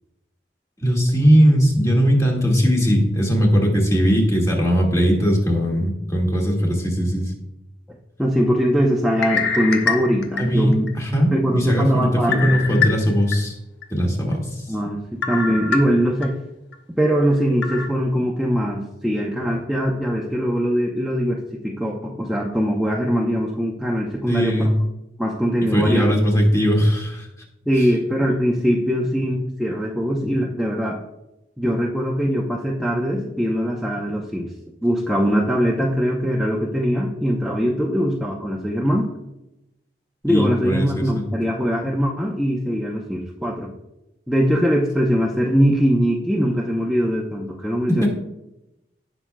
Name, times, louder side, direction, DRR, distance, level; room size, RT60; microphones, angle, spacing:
voice 1, 0.8-7.3 10.4-13.5 13.9-14.6 24.3-24.7 25.7-27.3 40.3-41.3 47.9-48.1, equal, 20° left, -1 dB, 1.9 m, -19 dB
voice 2, 8.2-10.9 11.3-12.5 14.7-16.4 17.0-24.7 25.2-26.1 27.7-31.0 31.6-34.5 34.8-39.1 40.2-43.7 44.3-48.1, equal, ahead, -3 dB, 0.7 m, -21 dB
sound 1, 9.1-10.9 11.4-11.5 12.3-13.4 13.8-13.9 15.2-16.3 16.7-16.8 17.6-17.9, left 5 dB, 80° left, 1.1 m, -25 dB
17.5 x 6.2 x 2.3 m, 0.90 s
head